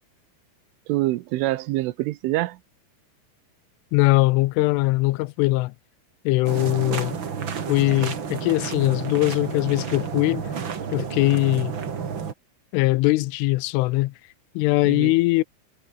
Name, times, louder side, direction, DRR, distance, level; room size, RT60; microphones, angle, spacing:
voice 1, 0.9-2.6 6.9-7.0 14.8-15.1, right 18 dB, 80° right, 3.4 m, -25 dB
voice 2, 3.9-5.7 6.3-7.1 7.7-10.4 10.9-11.8 12.7-14.1 14.6-15.4, left 21 dB, 85° left, 3.2 m, -21 dB
sound 1, 6.4-12.3, right 6 dB, 55° right, 1.3 m, -31 dB
omnidirectional pair, 5.7 m